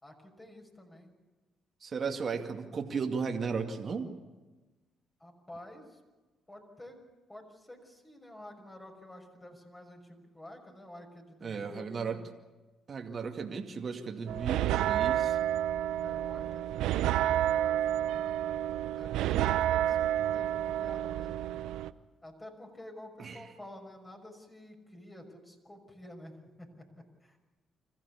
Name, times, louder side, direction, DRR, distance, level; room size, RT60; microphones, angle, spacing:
voice 1, 0.0-1.1 5.2-6.0 6.5-7.0 7.3-12.3 16.0-18.4 19.0-21.4 22.2-26.9 27.2-27.4, left 1 dB, 20° left, 2 dB, 6.0 m, -50 dB
voice 2, 1.8-4.1 11.4-12.2 12.9-15.4 23.2-23.4, right 5 dB, 50° right, 4 dB, 2.3 m, -35 dB
sound 1, 14.3-21.9, right 12 dB, 85° right, 0.6 m, -30 dB
26.0 x 15.0 x 8.6 m, 1.2 s
supercardioid pair, 65°, 0 cm